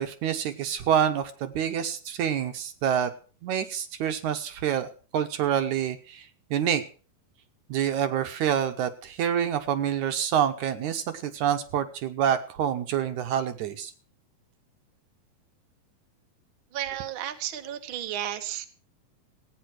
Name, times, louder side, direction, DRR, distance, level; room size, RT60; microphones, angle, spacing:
voice 1, 0.0-3.1 3.4-6.8 7.7-13.9, right 9 dB, 70° right, 9 dB, 1.9 m, -27 dB
voice 2, 16.7-18.7, right 11 dB, 85° right, 7 dB, 1.1 m, -33 dB
16.5 x 9.1 x 6.1 m, 0.38 s
omnidirectional pair, 4.4 m